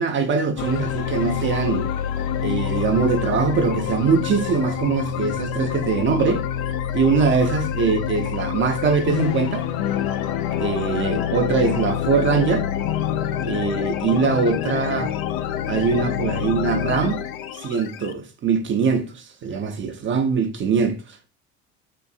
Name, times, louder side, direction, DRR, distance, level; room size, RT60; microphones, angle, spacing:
voice 1, 0.0-1.9 2.4-6.5 6.9-9.6 10.6-12.7 13.4-15.1 15.7-17.2 17.5-21.2, right 5 dB, 35° right, 0.6 m, -22 dB
sound 1, 0.6-18.1, left 9 dB, 65° left, 0.5 m, -26 dB
3.9 x 2.6 x 2.4 m
hypercardioid pair, 70°, 36 cm